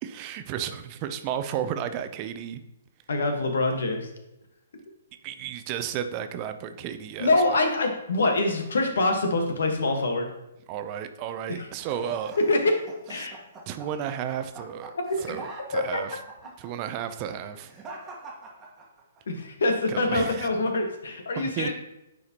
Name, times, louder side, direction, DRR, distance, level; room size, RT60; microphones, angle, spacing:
voice 1, 0.0-2.6 5.2-7.6 10.7-12.4 13.2-13.3 13.7-14.9 15.2-16.2 16.6-17.7 19.9-20.5 21.4-21.7, right 9 dB, 35° right, 10 dB, 0.5 m, -33 dB
voice 2, 3.1-4.1 7.2-10.3 11.6-11.7 12.5-12.7 13.1-13.3 15.1-15.3 15.7-16.0 19.3-21.7, left 2 dB, 75° left, 4 dB, 1.3 m, -25 dB
sound 1, 11.8-19.2, right 2 dB, 20° right, 1.4 m, -43 dB
9.4 x 4.9 x 2.9 m, 0.91 s
hypercardioid pair, 135°, 0 cm